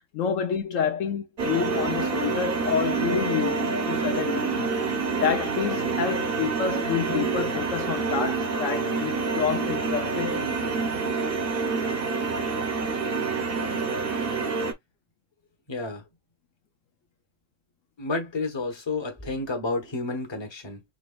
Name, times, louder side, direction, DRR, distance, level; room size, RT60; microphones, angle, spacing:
voice 1, 0.1-10.8, left 7 dB, 70° left, 1.0 m, -29 dB
sound 1, 1.4-14.7, right 4 dB, 45° right, 1.1 m, -27 dB
voice 2, 15.7-16.0 18.0-20.8, left 3 dB, 20° left, 1.1 m, -30 dB
5.0 x 3.2 x 2.4 m
omnidirectional pair, 1.4 m